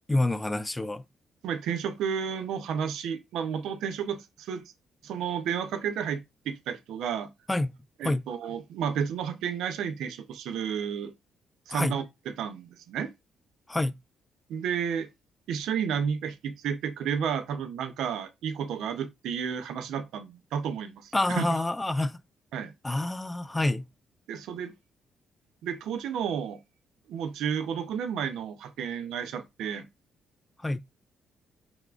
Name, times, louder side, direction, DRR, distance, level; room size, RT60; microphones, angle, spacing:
voice 1, 0.1-1.0 7.5-7.7 8.0-8.3 11.7-12.0 13.7-14.0 21.1-22.2 22.8-23.9 30.6-30.8, left 2 dB, 15° left, 0.3 m, -27 dB
voice 2, 1.4-4.6 5.0-7.3 8.0-11.1 11.7-12.0 12.4-13.1 14.5-15.1 15.5-21.5 22.5-22.7 24.3-24.7 25.6-26.6 27.1-29.9, right 7 dB, 80° right, 0.7 m, -31 dB
4.6 x 3.5 x 2.4 m
cardioid pair, 90°, 0 cm